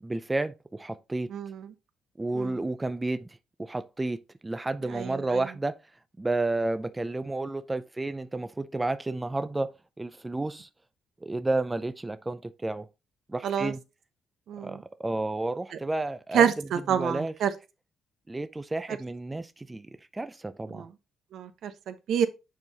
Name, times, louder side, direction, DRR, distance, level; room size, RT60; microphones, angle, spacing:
voice 1, 0.0-1.3 2.2-4.2 4.4-5.8 6.2-9.7 10.0-10.7 11.2-12.9 13.3-13.8 14.6-17.3 18.3-19.9 20.1-20.9, right 2 dB, 15° right, 0.4 m, -31 dB
voice 2, 1.3-1.7 2.3-2.5 4.9-5.4 13.4-13.7 14.5-14.8 16.3-17.5 20.7-20.9 21.3-22.3, right 8 dB, 75° right, 0.9 m, -27 dB
7.7 x 4.6 x 2.8 m
cardioid pair, 90°, 0 cm